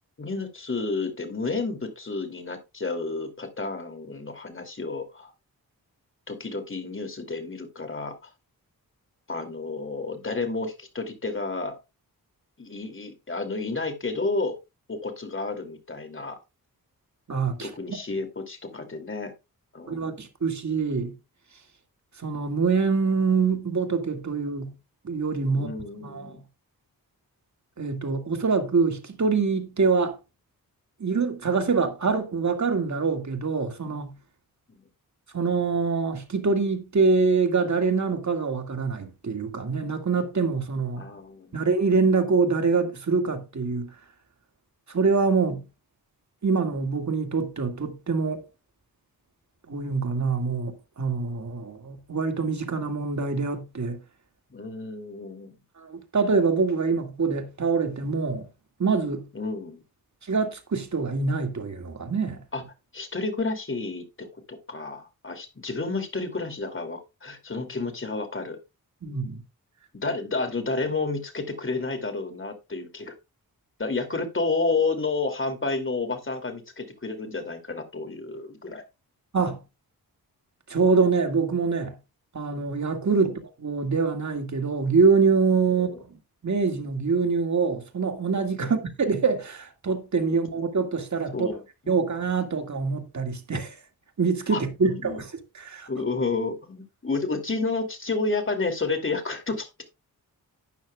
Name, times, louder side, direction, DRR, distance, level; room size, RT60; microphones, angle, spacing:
voice 1, 0.2-5.3 6.3-8.3 9.3-11.8 12.6-14.6 14.9-16.4 17.6-19.3 19.7-20.2 25.5-26.4 34.7-34.8 41.0-41.6 54.5-55.6 59.3-59.8 62.5-62.6 62.9-68.6 69.9-73.1 73.8-78.8 83.1-83.3 85.7-86.0 88.6-88.8 91.3-91.9 94.5-94.6 94.9-95.2 95.9-99.8, left 3 dB, 35° left, 2.8 m, -31 dB
voice 2, 17.3-17.7 19.9-21.1 22.2-24.7 25.0-25.7 26.0-26.4 27.8-30.2 31.0-34.1 35.3-41.1 41.5-43.9 44.9-45.6 46.4-48.4 49.7-54.0 55.8-58.5 58.8-59.3 60.2-62.4 69.0-69.4 79.3-79.6 80.7-82.0 82.3-86.2 86.4-91.5 91.9-93.8 94.2-95.9, right 4 dB, 50° right, 2.1 m, -25 dB
12.0 x 9.5 x 2.3 m
cardioid pair, 75°, 36 cm